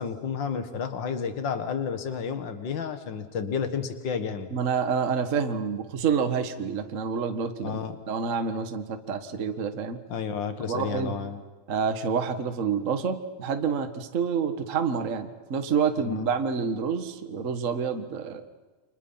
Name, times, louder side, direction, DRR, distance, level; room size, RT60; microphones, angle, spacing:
voice 1, 0.0-4.5 7.6-8.0 10.1-11.4 16.0-16.3, left 6 dB, 45° left, 8 dB, 1.6 m, -31 dB
voice 2, 4.5-7.8 8.1-10.0 10.7-11.2 11.7-18.4, right 6 dB, 90° right, 6 dB, 0.6 m, -28 dB
30.0 x 25.5 x 5.7 m, 1.3 s
omnidirectional pair, 4.2 m